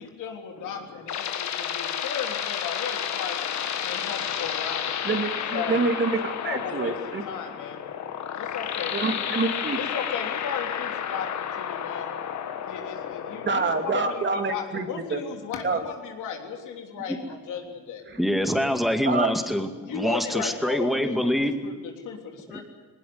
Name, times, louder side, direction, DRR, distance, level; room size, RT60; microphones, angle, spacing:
voice 1, 0.0-3.4 3.8-4.9 5.5-6.9 7.3-7.8 8.4-9.2 9.8-12.1 12.6-18.0 19.1-19.2 19.9-21.3 21.6-22.6, left 7 dB, 85° left, 3 dB, 3.4 m, -36 dB
sound 1, 0.6-14.2, left 8 dB, 65° left, 1.7 m, -31 dB
voice 2, 5.0-7.2 8.9-9.8 13.4-14.9 15.1-15.2 15.6-15.8 18.1-18.2 19.1-19.3, right 4 dB, 40° right, 6 dB, 2.5 m, -26 dB
voice 3, 18.2-21.6 22.5-22.6, equal, ahead, 5 dB, 2.3 m, -25 dB
19.5 x 19.0 x 9.6 m, 1.3 s
cardioid pair, 90°, 30 cm